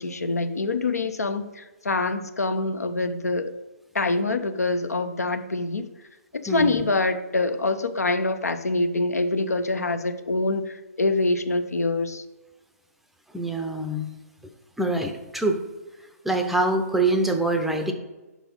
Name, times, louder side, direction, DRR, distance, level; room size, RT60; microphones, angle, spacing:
voice 1, 0.0-3.5 3.9-5.9 6.3-12.2, left 2 dB, 80° left, 10 dB, 0.6 m, -25 dB
voice 2, 6.5-6.8 13.3-14.1 14.8-15.6 16.2-17.9, right 2 dB, ahead, 5 dB, 0.5 m, -24 dB
5.9 x 4.2 x 5.3 m, 1.1 s
figure-of-eight pair, 130°, 8 cm